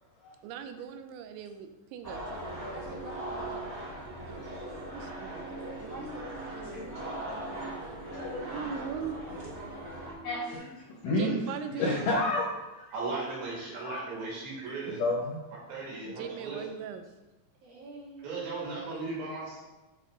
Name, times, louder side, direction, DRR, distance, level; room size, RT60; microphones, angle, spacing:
voice 1, 0.4-2.3 4.3-4.5 4.9-5.5 8.4-9.2 11.1-12.2 16.0-17.1, right 7 dB, 90° right, 8 dB, 3.0 m, -39 dB
sound 1, 2.0-10.1, right 1 dB, 10° right, 1.1 m, -40 dB
sound 2, 2.4-10.6, right 7 dB, 35° right, 0.9 m, -47 dB
voice 2, 2.7-3.6 5.8-7.6 14.7-14.8 16.2-16.3 17.6-18.5, right 1 dB, 55° right, -6 dB, 3.8 m, -46 dB
voice 3, 6.5-7.3 8.1-8.7 10.2-11.4 11.8-12.5 12.7-12.9 13.8-14.0 14.9-15.4, left 2 dB, 75° left, -3 dB, 2.0 m, -31 dB
voice 4, 12.9-15.0 15.7-16.7 18.2-19.6, right 3 dB, 70° right, -5 dB, 4.4 m, -36 dB
8.6 x 5.3 x 3.8 m, 1.1 s
omnidirectional pair, 5.1 m